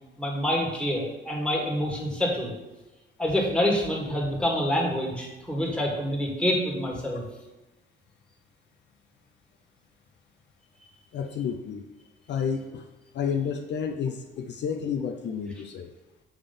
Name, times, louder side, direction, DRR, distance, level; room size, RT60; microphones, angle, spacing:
voice 1, 0.2-2.5 3.2-7.2, equal, 5° left, -3 dB, 1.8 m, -27 dB
voice 2, 11.1-11.8 12.3-12.9 13.1-15.9, left 7 dB, 60° left, 5 dB, 0.5 m, -30 dB
7.2 x 3.4 x 5.3 m, 1.1 s
cardioid pair, 90°, 20 cm